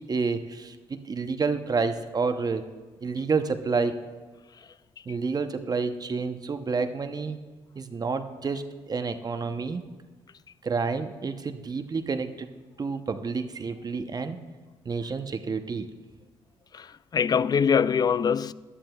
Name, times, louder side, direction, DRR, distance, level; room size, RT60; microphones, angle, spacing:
voice 1, 0.0-2.6 3.0-3.9 5.1-7.4 7.8-9.8 10.6-12.5 12.8-14.4 14.8-15.9, right 4 dB, 35° right, 0.7 m, -29 dB
voice 2, 16.7-18.5, left 7 dB, 35° left, 0.4 m, -23 dB
15.0 x 11.5 x 2.3 m
supercardioid pair, 65°, 11 cm